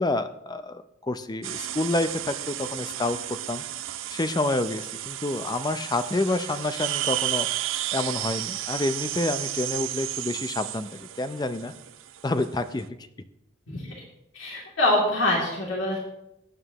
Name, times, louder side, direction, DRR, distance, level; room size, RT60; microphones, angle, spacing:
voice 1, 0.0-3.6 4.1-7.5 7.9-11.7 12.2-13.0, left 2 dB, 20° left, 10 dB, 0.5 m, -28 dB
sound 1, 1.4-12.8, right 13 dB, 85° right, 0.5 m, -33 dB
voice 2, 14.3-16.0, left 1 dB, 80° left, -3 dB, 2.8 m, -24 dB
17.5 x 9.1 x 3.0 m, 0.84 s
head